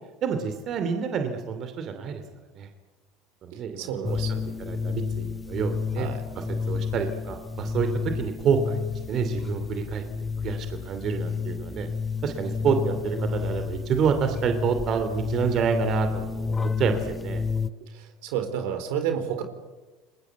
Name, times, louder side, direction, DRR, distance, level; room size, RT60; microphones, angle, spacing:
voice 1, 0.2-2.2 2.6-2.7 3.4-4.2 4.6-6.1 6.7-8.8 9.1-10.0 10.4-11.9 12.2-17.4, right 6 dB, 50° right, 7 dB, 2.9 m, -28 dB
voice 2, 3.8-4.5 6.0-6.2 17.9-19.4, right 8 dB, 75° right, 8 dB, 4.1 m, -30 dB
sound 1, 4.0-17.7, left 5 dB, 20° left, 0.9 m, -30 dB
30.0 x 21.0 x 8.3 m, 1.2 s
supercardioid pair, 95°, 0 cm